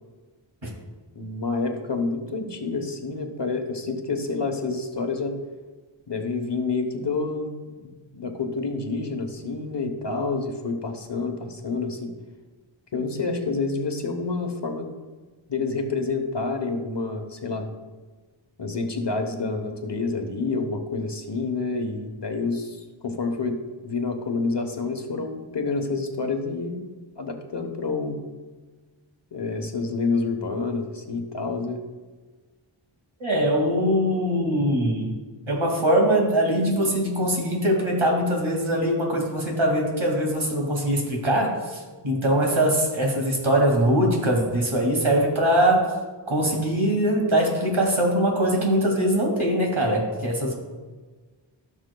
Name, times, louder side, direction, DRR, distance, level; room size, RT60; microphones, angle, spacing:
voice 1, 1.1-5.4 6.1-12.1 12.9-14.9 15.5-17.7 18.6-26.8 27.1-28.2 29.3-31.8, left 3 dB, 60° left, 5 dB, 1.1 m, -28 dB
voice 2, 33.2-35.1 35.5-45.9 46.3-50.6, right 1 dB, 85° right, -1 dB, 2.3 m, -22 dB
15.5 x 6.1 x 2.3 m, 1.3 s
wide cardioid pair, 50°, 47 cm